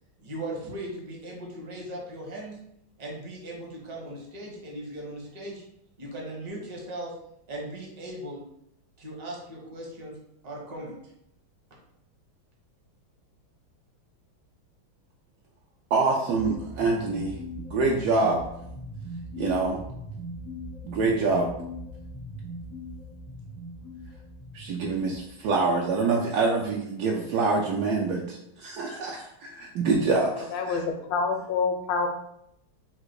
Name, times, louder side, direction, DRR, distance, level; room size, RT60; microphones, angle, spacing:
voice 1, 0.2-2.6 3.0-5.6 6.0-7.1 7.5-8.4 9.0-10.2 10.4-11.0, right 1 dB, 35° right, -2 dB, 0.6 m, -38 dB
voice 2, 15.9-18.4 19.4-19.8 20.8-21.5 24.5-30.8, right 3 dB, 75° right, -2 dB, 0.9 m, -26 dB
sound 1, 16.3-25.9, equal, 45° left, 0.5 m, -40 dB
voice 3, 30.5-32.1, left 5 dB, 75° left, 4 dB, 1.3 m, -27 dB
3.7 x 2.4 x 4.6 m, 0.77 s
omnidirectional pair, 2.2 m